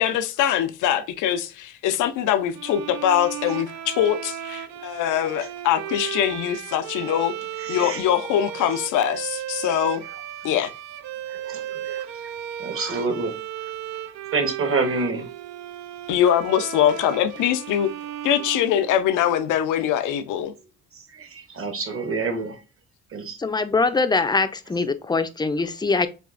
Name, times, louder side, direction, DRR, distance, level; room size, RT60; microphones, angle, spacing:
voice 1, 0.0-7.3 7.7-10.0 10.4-10.7 16.1-17.9 18.2-20.5, left 10 dB, 90° left, 0.6 m, -23 dB
sound 1, 2.5-19.4, right 11 dB, 65° right, 0.5 m, -35 dB
voice 2, 7.6-8.0 10.1-10.2 11.3-13.4 14.3-15.3 20.9-22.6 23.1-23.4, right 3 dB, 45° right, 1.2 m, -28 dB
voice 3, 23.4-26.1, left 3 dB, 15° left, 0.5 m, -22 dB
6.7 x 2.4 x 2.4 m
cardioid pair, 90°, 30 cm